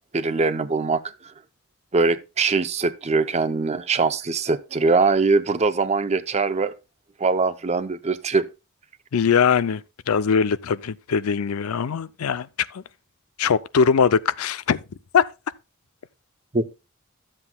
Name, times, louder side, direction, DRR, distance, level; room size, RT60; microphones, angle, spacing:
voice 1, 0.1-1.0 1.9-6.7 7.2-8.5 16.5-16.7, right 4 dB, 30° right, 0.6 m, -22 dB
voice 2, 9.1-9.8 10.1-12.8 13.4-14.8 15.1-15.3, left 6 dB, 85° left, 0.5 m, -21 dB
13.0 x 7.6 x 2.2 m
head